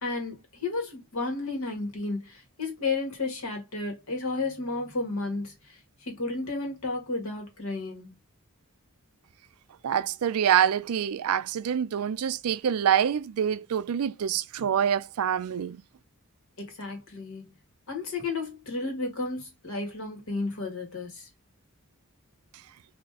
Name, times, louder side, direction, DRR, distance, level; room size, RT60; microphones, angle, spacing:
voice 1, 0.0-5.8 6.1-8.1 16.6-17.5 17.9-21.3, left 3 dB, 70° left, 1.9 m, -32 dB
voice 2, 9.8-15.8, right 9 dB, 80° right, 0.4 m, -26 dB
4.1 x 2.8 x 3.5 m
head